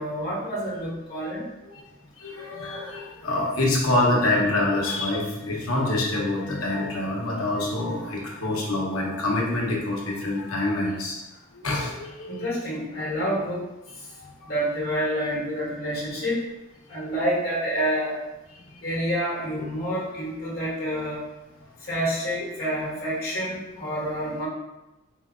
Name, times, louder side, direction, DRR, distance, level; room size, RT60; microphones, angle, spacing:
voice 1, 0.0-1.4 12.3-13.6 14.4-16.4 16.9-18.2 18.8-21.2 21.9-24.5, equal, 45° left, -5 dB, 1.4 m, -28 dB
voice 2, 2.2-11.2 11.5-12.5 14.2-14.5, left 2 dB, 80° left, -2 dB, 1.0 m, -26 dB
4.5 x 2.3 x 3.6 m, 0.98 s
head